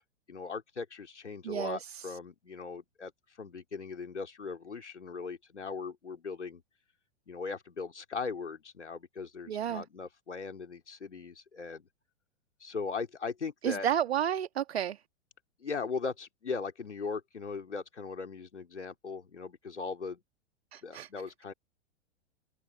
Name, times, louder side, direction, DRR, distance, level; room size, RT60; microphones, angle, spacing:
voice 1, 0.3-3.1 3.4-6.6 7.3-11.9 12.6-13.9 15.6-20.2 20.8-21.5, left 5 dB, 75° left, 3.2 m, -39 dB
voice 2, 1.4-2.1 9.5-9.8 13.6-15.0 20.7-21.1, right 9 dB, 60° right, 1.7 m, -31 dB
figure-of-eight pair, 100°, 35 cm